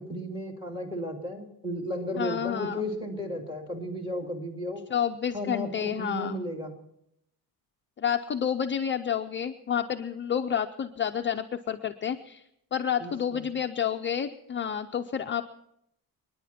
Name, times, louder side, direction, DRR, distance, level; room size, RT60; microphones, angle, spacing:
voice 1, 0.0-4.8 5.3-6.7 13.0-13.4, left 1 dB, 15° right, 3 dB, 2.4 m, -34 dB
voice 2, 2.2-2.8 4.9-6.4 8.0-12.4 12.7-15.4, left 8 dB, 30° left, 5 dB, 0.5 m, -29 dB
29.5 x 10.0 x 4.3 m, 0.76 s
cardioid pair, 165°, 39 cm